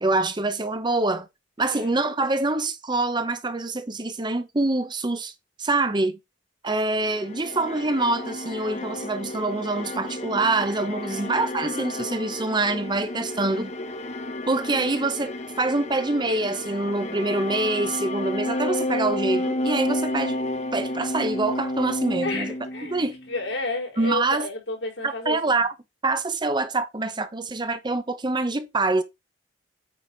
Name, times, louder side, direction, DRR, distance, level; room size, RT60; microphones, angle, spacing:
voice 1, 0.0-1.3 1.6-5.3 5.6-6.2 6.6-13.7 14.5-20.3 20.7-22.5 22.9-23.1 24.0-24.5 25.0-25.7 26.0-29.0, right 2 dB, 25° right, 0.8 m, -25 dB
voice 2, 1.6-2.0 10.9-11.4 22.2-23.0 23.3-25.7, left 2 dB, 85° left, 4.3 m, -32 dB
sound 1, 7.0-23.3, left 1 dB, 40° left, 1.0 m, -31 dB
8.7 x 4.2 x 4.5 m
head